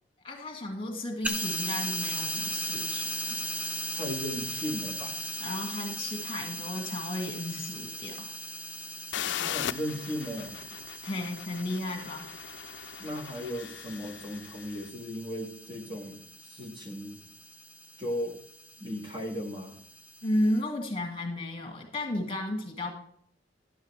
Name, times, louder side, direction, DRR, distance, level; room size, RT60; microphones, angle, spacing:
voice 1, 0.2-3.4 5.4-8.3 11.0-12.3 20.2-23.0, left 1 dB, 30° left, 2 dB, 2.0 m, -33 dB
sound 1, 1.2-20.6, equal, 10° right, 0.7 m, -38 dB
voice 2, 3.9-5.2 9.2-10.6 13.0-17.2 18.0-18.4 18.8-19.8, equal, 25° right, 0 dB, 1.8 m, -36 dB
sound 2, 9.1-14.8, left 10 dB, 75° left, 0.4 m, -39 dB
11.5 x 9.3 x 3.3 m, 0.63 s
head